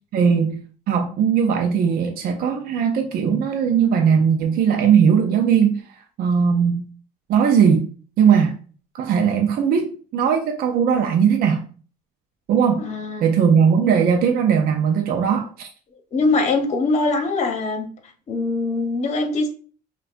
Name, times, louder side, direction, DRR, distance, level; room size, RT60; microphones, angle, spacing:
voice 1, 0.1-0.6 0.9-5.8 6.2-6.8 7.3-7.9 8.2-8.6 9.0-11.7 12.5-12.8 13.2-15.7, right 7 dB, 60° right, 0.5 m, -18 dB
voice 2, 12.8-13.3 16.1-17.9 18.3-19.5, left 3 dB, 40° left, 0.9 m, -22 dB
5.7 x 2.3 x 2.5 m
cardioid pair, 110°, 17 cm